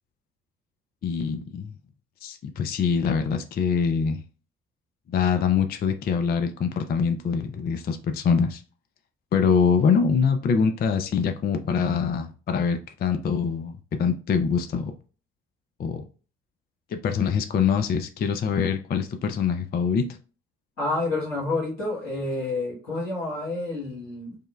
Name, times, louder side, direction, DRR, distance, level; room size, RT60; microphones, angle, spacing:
voice 1, 1.0-1.7 2.2-4.2 5.1-8.6 9.3-14.9 15.8-16.0 16.9-20.1, left 6 dB, 25° left, 0.4 m, -24 dB
voice 2, 20.8-24.3, left 2 dB, 85° left, 1.4 m, -29 dB
5.1 x 2.1 x 2.2 m
figure-of-eight pair, 45°, 37 cm